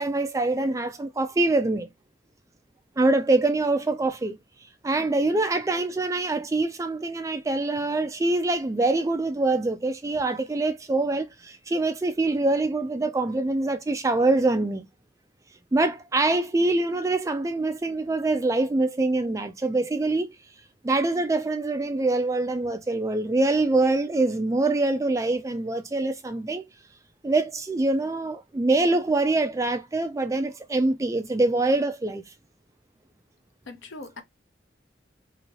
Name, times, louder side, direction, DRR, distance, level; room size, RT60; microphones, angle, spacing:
voice 1, 0.0-1.9 3.0-4.4 4.8-14.9 15.7-20.4 20.8-26.6 27.2-32.2, right 2 dB, 15° right, 0.3 m, -24 dB
voice 2, 5.0-5.4 33.7-34.2, left 3 dB, 80° left, 0.7 m, -42 dB
2.8 x 2.7 x 2.8 m
head